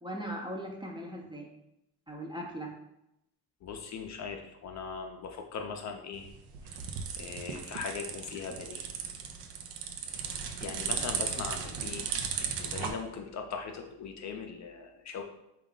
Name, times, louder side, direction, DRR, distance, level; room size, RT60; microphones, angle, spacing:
voice 1, 0.0-1.5 2.1-2.7, equal, 10° right, 0 dB, 0.5 m, -39 dB
voice 2, 3.6-6.3 6.6-6.8 7.2-8.9 10.4-12.1 12.4-15.2, left 5 dB, 45° left, 4 dB, 0.5 m, -40 dB
sound 1, 6.1-12.9, right 7 dB, 85° right, 0.5 m, -36 dB
3.6 x 2.4 x 3.7 m, 0.85 s
cardioid pair, 100°, 40 cm